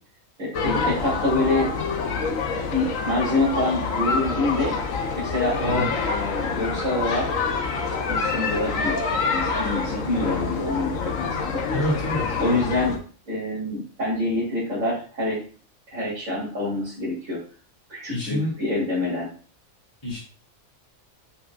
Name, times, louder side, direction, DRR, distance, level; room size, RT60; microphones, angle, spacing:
voice 1, 0.4-1.7 2.7-4.7 5.1-7.3 8.1-9.0 9.3-11.6 12.4-12.9 13.3-15.4 15.9-17.4 17.9-19.3, left 2 dB, 75° right, -10 dB, 3.5 m, -26 dB
sound 1, 0.5-13.0, left 4 dB, 75° left, 1.3 m, -26 dB
voice 2, 5.6-5.9 11.7-12.7 18.1-18.5 20.0-20.2, equal, 20° left, -9 dB, 2.8 m, -27 dB
6.6 x 6.0 x 2.4 m, 0.39 s
omnidirectional pair, 1.4 m